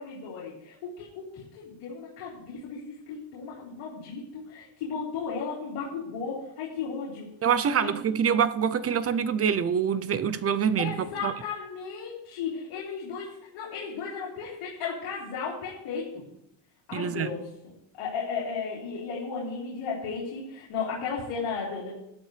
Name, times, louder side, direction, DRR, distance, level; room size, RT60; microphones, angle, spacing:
voice 1, 0.0-7.3 7.8-7.9 10.8-16.2 16.9-17.7 18.0-21.9, left 5 dB, 75° left, -7 dB, 3.8 m, -35 dB
voice 2, 7.4-10.9 11.2-11.3 16.9-17.3, right 7 dB, 30° right, 15 dB, 0.5 m, -25 dB
12.5 x 12.0 x 3.3 m, 0.79 s
cardioid pair, 135°, 49 cm